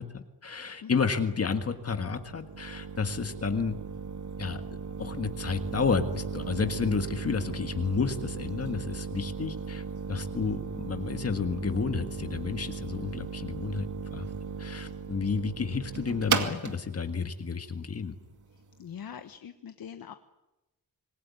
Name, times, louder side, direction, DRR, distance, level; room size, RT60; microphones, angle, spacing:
voice 1, 0.0-3.7 4.4-4.6 5.0-14.3 14.6-18.1, left 5 dB, 40° left, 7 dB, 1.8 m, -31 dB
sound 1, 1.2-18.8, right 5 dB, 55° right, 2.3 m, -37 dB
voice 2, 18.8-20.1, left 8 dB, 70° left, 8 dB, 1.3 m, -42 dB
26.5 x 20.5 x 9.7 m, 0.99 s
wide cardioid pair, 165°, 37 cm